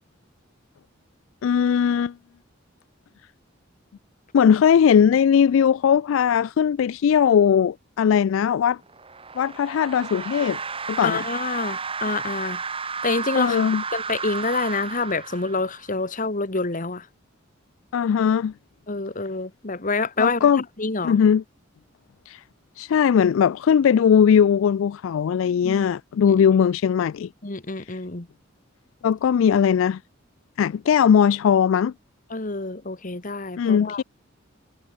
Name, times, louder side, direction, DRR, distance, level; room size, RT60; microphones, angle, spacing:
voice 1, 1.4-2.1 4.3-8.8 9.4-10.6 10.9-11.2 13.3-13.8 17.9-18.5 20.2-20.6 21.0-21.4 22.3-22.4 22.8-27.3 29.0-30.0 30.6-31.9 33.6-34.0, left 7 dB, 75° left, 0.3 m, -19 dB
sound 1, 8.9-15.9, right 5 dB, 30° right, 2.7 m, -32 dB
voice 2, 11.0-12.6 13.0-17.0 18.9-20.5 20.8-21.2 25.6-25.9 26.2-26.3 27.4-28.3 32.3-34.0, left 3 dB, 40° left, 1.7 m, -27 dB
head